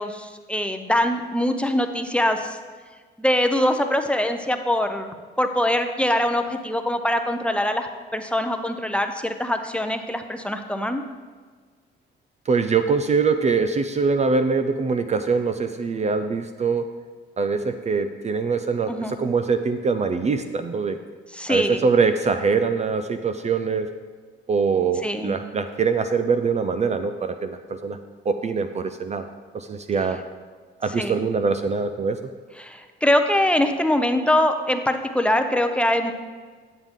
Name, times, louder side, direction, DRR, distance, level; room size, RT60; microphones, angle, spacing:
voice 1, 0.0-2.6 3.2-5.1 5.4-7.9 8.1-11.0 18.9-19.2 21.3-21.8 25.0-25.5 31.0-31.2 32.6-36.1, left 1 dB, 5° left, 6 dB, 0.6 m, -23 dB
voice 2, 12.5-16.9 17.4-21.0 21.5-23.9 24.5-28.0 28.3-29.2 29.5-30.2 30.8-32.2, right 5 dB, 35° right, 8 dB, 0.5 m, -23 dB
9.7 x 7.4 x 3.6 m, 1.5 s
cardioid pair, 90°, 20 cm